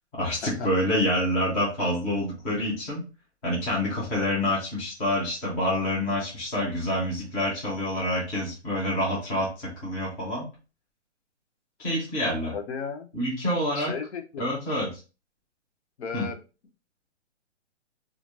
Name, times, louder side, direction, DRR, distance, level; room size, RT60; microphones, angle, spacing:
voice 1, 0.1-3.0 3.4-10.5 11.8-12.5 13.1-13.9 14.4-15.0 16.1-16.2, left 1 dB, 10° left, -6 dB, 0.5 m, -27 dB
voice 2, 12.5-13.1 13.7-14.5 16.0-16.4, left 5 dB, 65° left, 6 dB, 0.6 m, -35 dB
3.0 x 2.4 x 2.5 m, 0.32 s
hypercardioid pair, 155°, 36 cm